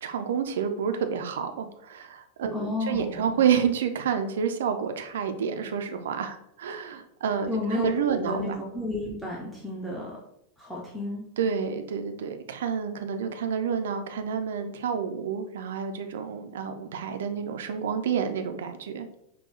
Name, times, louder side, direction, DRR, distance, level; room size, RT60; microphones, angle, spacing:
voice 1, 0.0-8.6 11.4-19.1, right 7 dB, 60° right, 7 dB, 0.5 m, -29 dB
voice 2, 2.5-3.4 7.5-10.2 10.6-11.2, left 2 dB, ahead, -5 dB, 0.8 m, -32 dB
5.5 x 2.3 x 4.2 m, 0.78 s
figure-of-eight pair, 90°, 0 cm